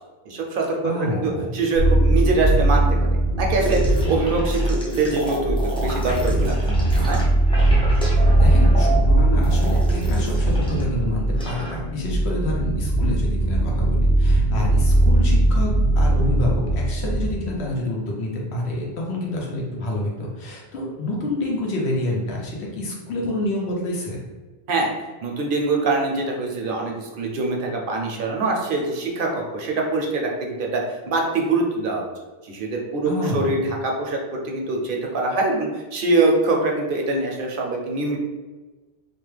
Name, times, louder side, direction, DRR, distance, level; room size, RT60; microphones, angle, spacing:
voice 1, 0.3-2.8 3.4-7.2 24.7-24.9 25.2-32.0 32.4-34.2 34.4-38.2, right 3 dB, 65° right, 0 dB, 0.7 m, -24 dB
voice 2, 0.8-1.5 8.4-24.2 33.0-33.6, left 1 dB, 85° left, -2 dB, 1.0 m, -28 dB
sound 1, 1.7-17.7, right 1 dB, 50° left, 1.5 m, -20 dB
sound 2, 3.6-10.9 11.1-11.8, right 1 dB, 10° left, 0.3 m, -32 dB
2.9 x 2.1 x 3.2 m, 1.3 s
omnidirectional pair, 1.1 m